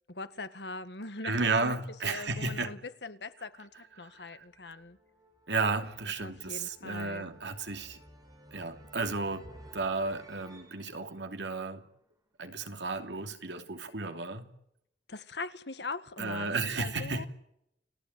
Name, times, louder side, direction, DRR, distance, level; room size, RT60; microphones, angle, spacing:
voice 1, 0.1-1.8 2.0-5.0 6.2-7.3 15.1-17.2, left 3 dB, 70° left, 1.8 m, -41 dB
voice 2, 1.2-2.7 4.0-4.4 5.5-8.0 8.5-11.8 12.4-14.5 16.2-17.3, right 3 dB, 85° right, 2.8 m, -33 dB
sound 1, 3.3-12.3, right 1 dB, 20° right, 5.4 m, -56 dB
30.0 x 17.5 x 9.4 m
head